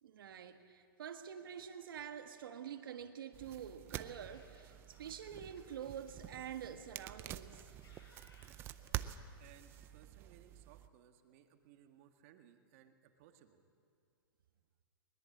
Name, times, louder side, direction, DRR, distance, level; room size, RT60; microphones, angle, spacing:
voice 1, 0.0-7.6, right 8 dB, 70° right, 7 dB, 1.6 m, -47 dB
Laughter, 2.5-6.9 7.5-9.1, left 2 dB, 85° left, 6.7 m, -67 dB
sound 1, 3.3-10.9, right 13 dB, 20° right, 0.5 m, -48 dB
voice 2, 9.4-13.7, right 10 dB, 35° right, 6 dB, 1.8 m, -63 dB
21.5 x 21.0 x 8.6 m, 2.4 s
hypercardioid pair, 160°, 12 cm